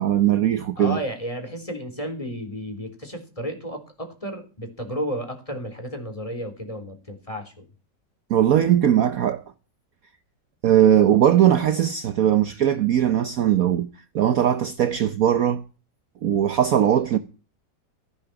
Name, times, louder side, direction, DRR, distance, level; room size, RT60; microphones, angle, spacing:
voice 1, 0.0-1.0 8.3-9.4 10.6-13.9 14.1-15.6 16.2-17.2, right 10 dB, 60° right, 1.1 m, -19 dB
voice 2, 0.8-7.7, equal, 20° left, 3.7 m, -32 dB
15.0 x 10.5 x 5.9 m
omnidirectional pair, 1.9 m